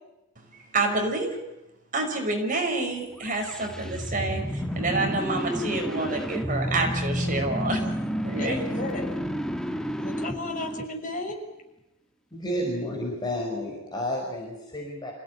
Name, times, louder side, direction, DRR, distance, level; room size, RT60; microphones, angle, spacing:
voice 1, 0.5-1.4 1.9-7.9 8.2-8.6, right 2 dB, 40° right, 3 dB, 5.7 m, -28 dB
sound 1, 3.2-11.3, equal, 5° left, 1.2 m, -30 dB
voice 2, 8.4-9.3 10.0-11.4, left 2 dB, 40° left, 2 dB, 6.3 m, -33 dB
voice 3, 12.3-15.1, left 1 dB, 20° left, -1 dB, 5.5 m, -31 dB
27.0 x 17.0 x 9.8 m, 0.93 s
head